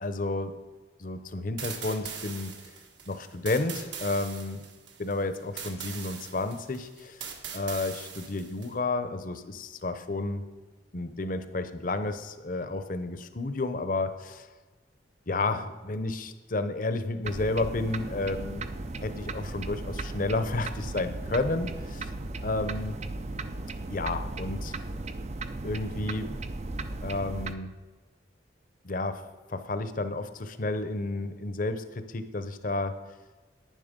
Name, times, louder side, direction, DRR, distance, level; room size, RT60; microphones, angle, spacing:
voice 1, 0.0-0.6 1.0-2.5 3.1-4.6 5.0-7.2 7.5-10.4 10.9-14.5 15.3-18.7 19.0-22.1 22.4-23.0 23.9-24.8 25.6-26.3 27.0-27.7 28.8-29.2 29.5-32.9, left 2 dB, 45° left, 10 dB, 0.8 m, -31 dB
sound 1, 1.6-8.7, right 7 dB, 70° right, 1.7 m, -41 dB
sound 2, 17.2-27.5, right 2 dB, 35° right, 0.5 m, -36 dB
11.0 x 9.6 x 5.2 m, 1.3 s
head